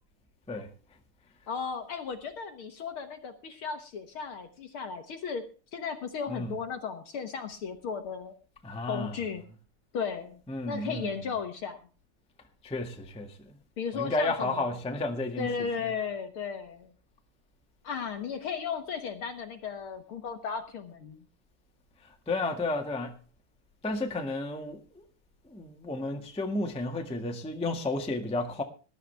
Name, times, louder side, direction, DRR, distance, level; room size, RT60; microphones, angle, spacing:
voice 1, 1.5-5.5 5.7-8.3 8.9-9.4 9.9-10.4 10.7-11.8 13.8-14.7 15.4-16.9 17.8-21.2, left 6 dB, 55° left, 1.8 m, -35 dB
voice 2, 8.6-9.2 10.5-11.2 12.6-13.6 13.9-15.5 15.8-15.9 22.3-23.2 23.8-25.0 25.5-28.6, left 2 dB, 5° left, 1.0 m, -32 dB
20.0 x 11.5 x 3.4 m
omnidirectional pair, 3.3 m